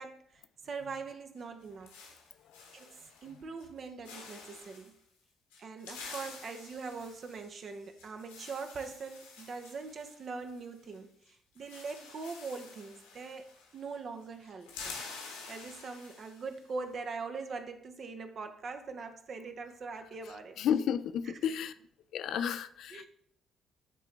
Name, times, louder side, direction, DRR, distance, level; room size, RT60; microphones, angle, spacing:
voice 1, 0.0-1.9 2.7-3.0 3.2-4.9 5.6-14.9 15.5-20.6 21.4-21.5 22.9-23.1, right 4 dB, 50° right, 7 dB, 0.8 m, -42 dB
sound 1, 1.4-3.3 3.6-3.8 4.0-4.9 5.5-11.0 11.2-11.3 11.6-14.0 14.2-16.6, left 4 dB, 75° left, 1.2 m, -49 dB
voice 2, 20.6-21.7 22.1-23.1, left 8 dB, 60° left, 13 dB, 0.3 m, -32 dB
9.9 x 3.8 x 3.3 m, 0.66 s
figure-of-eight pair, 45°, 0 cm